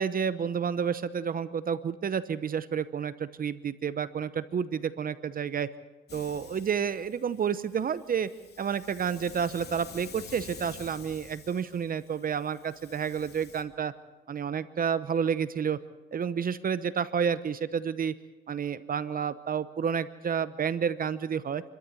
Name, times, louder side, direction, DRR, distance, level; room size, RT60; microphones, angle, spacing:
voice 1, 0.0-5.7 6.1-8.3 8.6-13.9 14.3-15.8 16.1-18.1 18.5-21.6, right 7 dB, 45° right, 14 dB, 0.9 m, -30 dB
Hiss, 6.1-13.6, left 6 dB, 55° left, 2.9 m, -49 dB
28.0 x 13.0 x 8.4 m, 1.2 s
cardioid pair, 90°, 20 cm